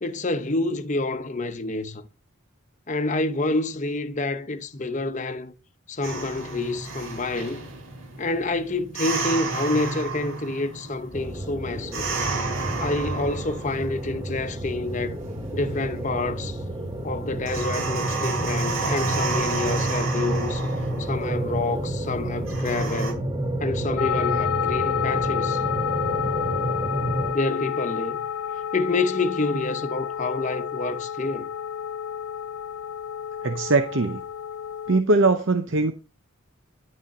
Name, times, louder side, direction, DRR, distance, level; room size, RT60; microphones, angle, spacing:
voice 1, 0.0-2.0 2.9-5.5 5.9-7.7 8.2-12.0 12.8-15.2 15.5-16.6 17.0-20.7 21.0-23.3 23.6-25.6 27.3-28.2 28.7-31.5, left 2 dB, 35° left, 0.8 m, -28 dB
sound 1, 6.0-23.1, right 3 dB, 85° right, 4.2 m, -32 dB
sound 2, 11.1-27.3, right 1 dB, 20° right, 1.0 m, -30 dB
sound 3, 24.0-35.0, left 8 dB, 80° left, 0.4 m, -30 dB
voice 2, 33.4-34.2 34.9-35.9, right 3 dB, 60° right, 0.8 m, -21 dB
10.5 x 6.2 x 4.2 m
head